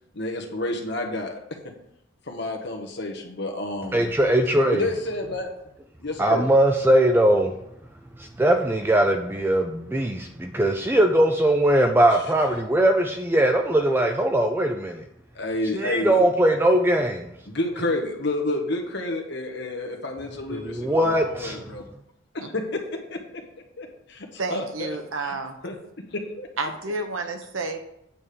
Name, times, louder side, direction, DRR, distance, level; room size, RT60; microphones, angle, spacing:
voice 1, 0.1-1.6 2.3-4.1 4.7-5.5 6.0-6.4 12.1-12.2 15.3-16.2 17.5-21.9 22.3-23.4 23.8-25.3 25.6-25.8 26.1-26.5, left 2 dB, 55° left, 3 dB, 1.3 m, -30 dB
voice 2, 3.9-4.9 6.2-7.5 8.2-15.0 15.7-17.3 20.6-21.6, right 1 dB, 10° right, 4 dB, 0.4 m, -20 dB
voice 3, 24.4-25.6 26.6-27.8, right 3 dB, 75° right, 6 dB, 1.0 m, -30 dB
8.5 x 3.6 x 6.7 m, 0.77 s
head